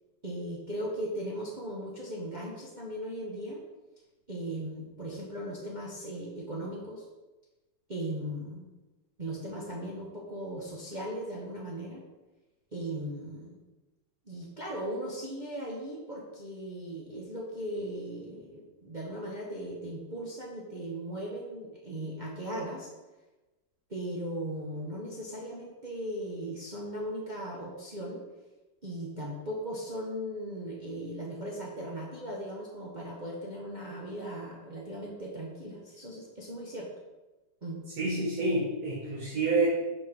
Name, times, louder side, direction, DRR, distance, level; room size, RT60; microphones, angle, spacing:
voice 1, 0.2-3.6 4.3-7.0 7.9-8.7 9.2-12.0 12.7-13.6 14.3-22.9 23.9-28.2 28.8-36.9 37.6-37.8, right 1 dB, 30° right, -4 dB, 1.0 m, -38 dB
voice 2, 38.0-39.7, right 3 dB, 60° right, -6 dB, 1.8 m, -28 dB
5.4 x 4.5 x 6.1 m, 1.1 s
omnidirectional pair, 1.9 m